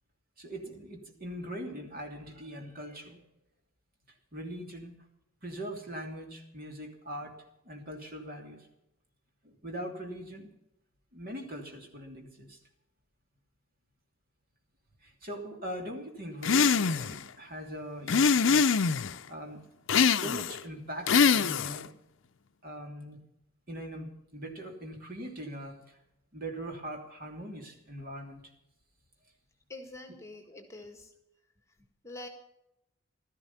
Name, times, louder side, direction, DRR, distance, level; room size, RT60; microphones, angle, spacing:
voice 1, 0.4-3.2 4.3-5.0 5.4-7.3 7.6-8.7 9.4-10.5 11.1-12.6 15.0-18.6 19.3-19.6 20.1-21.9 22.6-23.2 23.7-26.0 26.3-28.5, equal, 45° right, 2 dB, 2.9 m, -41 dB
sound 1, 16.4-17.2 18.1-19.1 19.9-20.6 21.1-21.9, left 5 dB, 65° left, 0.6 m, -24 dB
voice 2, 29.7-31.1 32.0-32.3, left 2 dB, 15° left, 5 dB, 1.8 m, -45 dB
16.0 x 13.0 x 5.7 m, 0.85 s
head